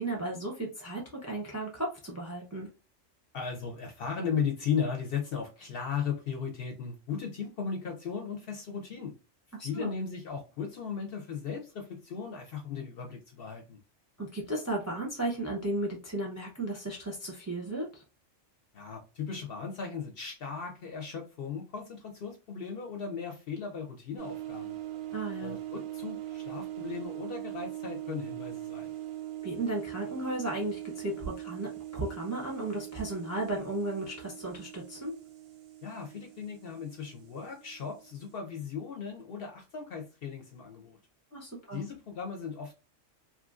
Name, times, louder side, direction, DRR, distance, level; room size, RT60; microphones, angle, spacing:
voice 1, 0.0-2.7 9.6-9.9 14.2-18.0 25.1-25.6 29.4-35.1 41.3-41.9, right 2 dB, 20° right, 0.4 m, -35 dB
voice 2, 3.3-9.1 9.6-13.8 18.7-24.8 25.4-28.9 35.8-41.0 41.7-42.7, left 6 dB, 60° left, 0.6 m, -36 dB
sound 1, 24.2-38.4, right 13 dB, 65° right, 0.7 m, -41 dB
2.9 x 2.4 x 2.4 m
omnidirectional pair, 1.3 m